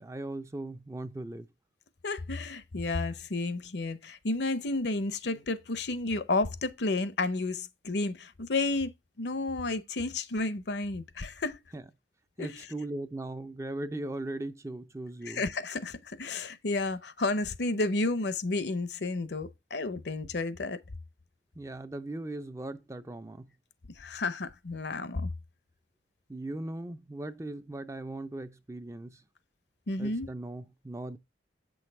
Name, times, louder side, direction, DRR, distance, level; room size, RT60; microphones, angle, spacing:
voice 1, 0.0-1.5 11.7-11.9 12.4-15.5 21.6-23.5 26.3-29.2 30.0-31.2, right 2 dB, 15° right, 0.4 m, -38 dB
voice 2, 2.0-8.9 9.2-11.6 12.4-12.5 15.2-20.8 24.0-25.3 29.9-30.3, left 2 dB, 65° left, 0.7 m, -31 dB
8.3 x 6.3 x 3.4 m
head